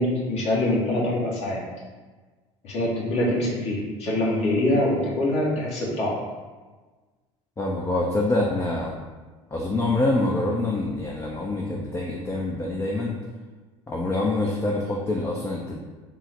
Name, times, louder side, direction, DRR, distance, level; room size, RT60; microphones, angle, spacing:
voice 1, 0.0-1.6 2.6-6.2, left 1 dB, 45° left, -5 dB, 1.2 m, -24 dB
voice 2, 7.6-9.0 9.5-13.2 13.9-15.8, left 2 dB, 15° left, -2 dB, 0.5 m, -25 dB
3.7 x 2.1 x 4.3 m, 1.3 s
hypercardioid pair, 65°, 15 cm